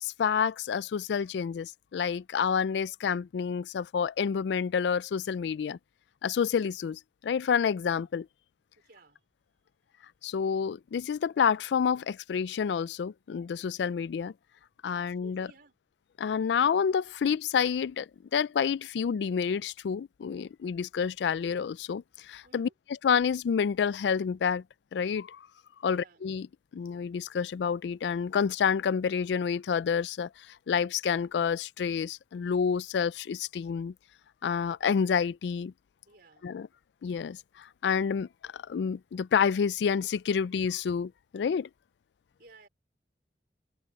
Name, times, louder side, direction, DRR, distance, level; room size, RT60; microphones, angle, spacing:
voice 1, 0.0-5.8 6.2-8.3 10.2-14.3 14.8-15.5 16.2-22.7 23.0-24.6 24.9-25.5 25.8-26.5 26.7-33.9 34.4-35.7 36.4-36.7 37.0-41.7, left 6 dB, 75° left, 0.3 m, -29 dB
voice 2, 8.8-9.2 14.8-15.8 22.4-22.7 25.9-26.2 36.1-36.6 42.4-42.7, right 3 dB, 60° right, 4.0 m, -56 dB
head